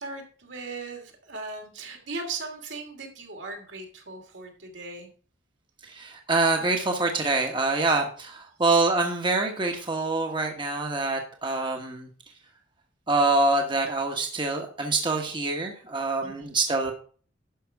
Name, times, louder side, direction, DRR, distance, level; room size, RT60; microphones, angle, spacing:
voice 1, 0.0-5.1 16.2-16.5, right 3 dB, 75° right, 2 dB, 2.8 m, -38 dB
voice 2, 5.8-12.1 13.1-16.9, right 3 dB, 25° right, 2 dB, 1.2 m, -25 dB
11.5 x 6.0 x 4.7 m, 0.42 s
head